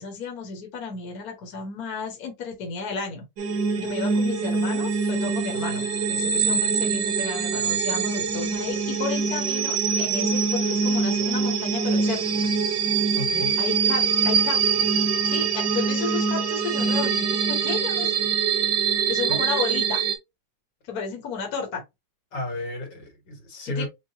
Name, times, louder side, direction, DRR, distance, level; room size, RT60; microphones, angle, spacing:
voice 1, 0.0-3.2 3.8-12.2 13.6-15.0 15.2-18.1 19.1-20.0 20.8-21.8 23.7-23.9, left 5 dB, 60° left, 1.6 m, -33 dB
sound 1, 3.4-20.2, right 5 dB, 85° right, 1.7 m, -24 dB
voice 2, 13.1-13.5 19.3-19.4 22.3-23.9, left 1 dB, 85° left, 2.6 m, -32 dB
5.6 x 2.4 x 2.7 m
omnidirectional pair, 1.9 m